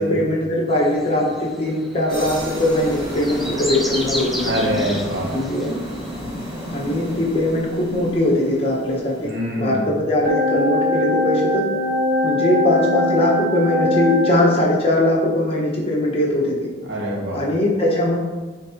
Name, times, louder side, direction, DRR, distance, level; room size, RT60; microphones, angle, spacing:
voice 1, 0.0-4.6 5.3-5.8 6.7-9.3 9.6-11.6 12.2-16.5 17.3-18.2, left 1 dB, 30° left, -3 dB, 1.3 m, -20 dB
sound 1, 0.7-6.2, equal, ahead, 0.4 m, -33 dB
sound 2, 2.1-9.3, equal, 15° right, 1.8 m, -31 dB
voice 2, 4.4-5.3 9.2-9.8 16.9-17.4, equal, 75° right, -4 dB, 1.9 m, -24 dB
sound 3, 10.3-14.3, left 1 dB, 50° right, 1.1 m, -21 dB
9.4 x 4.0 x 2.9 m, 1.3 s
head